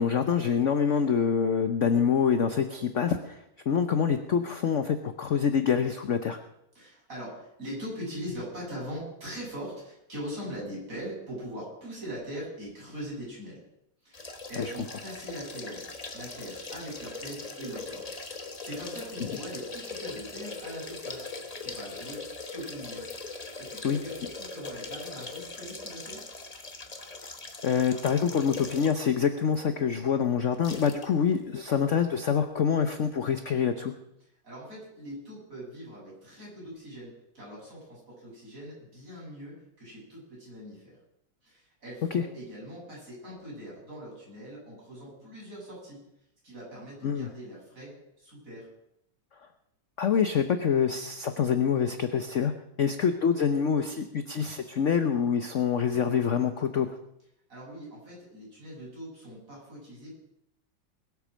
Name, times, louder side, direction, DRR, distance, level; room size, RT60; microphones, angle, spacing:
voice 1, 0.0-6.4 14.6-14.7 23.8-24.0 27.6-33.9 42.1-42.2 47.0-47.3 50.0-52.5 52.8-56.9, left 7 dB, 55° left, 8 dB, 0.9 m, -26 dB
voice 2, 6.7-13.6 14.0-18.1 18.4-21.3 21.6-22.2 22.5-23.1 23.3-26.3 34.4-41.0 41.4-46.0 46.4-48.7 57.5-60.2, equal, 40° right, -5 dB, 7.8 m, -41 dB
sound 1, 14.1-29.1 29.5-29.6 30.6-31.1 31.3-31.4, left 3 dB, 25° left, 0.9 m, -40 dB
21.0 x 8.4 x 6.3 m, 0.80 s
omnidirectional pair, 2.2 m